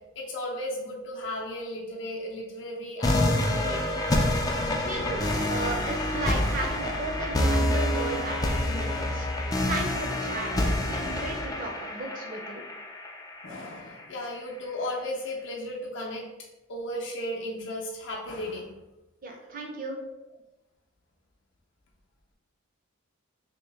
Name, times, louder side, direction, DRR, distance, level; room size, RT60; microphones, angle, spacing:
voice 1, 0.2-4.0 11.7-11.8 13.4-16.3 16.7-18.7, left 1 dB, 55° left, -3 dB, 0.6 m, -35 dB
sound 1, 3.0-14.0, left 1 dB, 15° left, 0.3 m, -27 dB
voice 2, 4.7-12.7 19.2-20.0, right 2 dB, 40° right, 2 dB, 0.6 m, -35 dB
3.0 x 2.9 x 3.4 m, 1.0 s
head